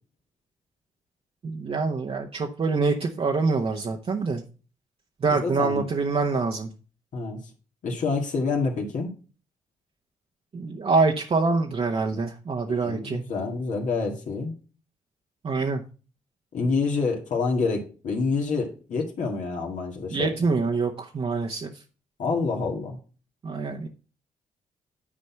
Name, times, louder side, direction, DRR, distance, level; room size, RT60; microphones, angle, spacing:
voice 1, 1.4-4.4 5.2-6.7 10.5-13.2 15.4-15.8 20.1-21.8 23.4-23.9, right 4 dB, 45° right, 1 dB, 1.0 m, -25 dB
voice 2, 5.3-5.9 7.1-7.4 7.8-9.1 12.7-14.5 16.5-20.3 22.2-23.0, left 4 dB, 65° left, 1 dB, 2.0 m, -27 dB
9.8 x 4.2 x 5.7 m, 0.36 s
supercardioid pair, 60°, 14 cm